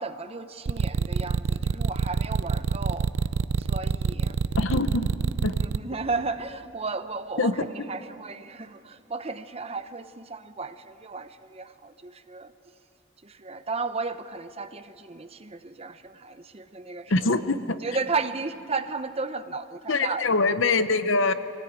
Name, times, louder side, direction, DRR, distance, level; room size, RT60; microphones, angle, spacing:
voice 1, 0.0-3.1 3.6-4.6 5.6-12.5 13.2-17.1 17.8-20.3, right 4 dB, 30° right, 0.7 m, -34 dB
sound 1, 0.7-5.8, right 5 dB, 70° right, 0.5 m, -25 dB
voice 2, 4.6-5.1 5.4-5.6 7.4-7.9 17.1-17.8 19.9-21.3, left 3 dB, 70° left, 0.8 m, -24 dB
25.0 x 17.5 x 8.9 m
head